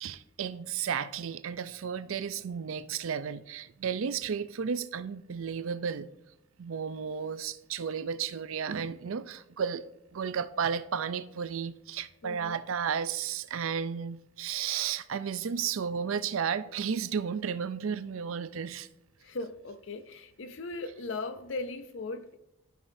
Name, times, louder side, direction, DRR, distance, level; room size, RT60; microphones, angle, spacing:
voice 1, 0.0-6.1 6.6-9.8 10.1-18.9, right 7 dB, 75° right, 0.4 m, -33 dB
voice 2, 12.2-12.5 19.2-22.4, left 3 dB, 60° left, 0.5 m, -38 dB
13.0 x 5.6 x 2.7 m
head